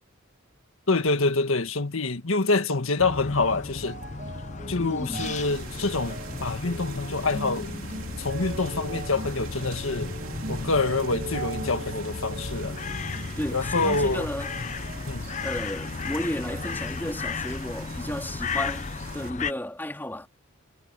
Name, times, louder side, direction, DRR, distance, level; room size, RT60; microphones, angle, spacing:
voice 1, 0.9-4.0 4.7-7.7 8.2-10.1 10.5-12.8 13.5-14.3 15.0-15.3, left 3 dB, 70° left, 1.7 m, -26 dB
sound 1, 2.7-16.1 16.5-17.4 18.1-18.2, right 2 dB, 45° right, 1.3 m, -41 dB
sound 2, 3.0-19.5, left 4 dB, 35° left, 0.6 m, -35 dB
voice 2, 4.8-5.4 13.4-14.7 15.4-20.3, equal, 10° left, 3.7 m, -33 dB
sound 3, 5.1-19.3, right 4 dB, 75° right, 2.8 m, -43 dB
head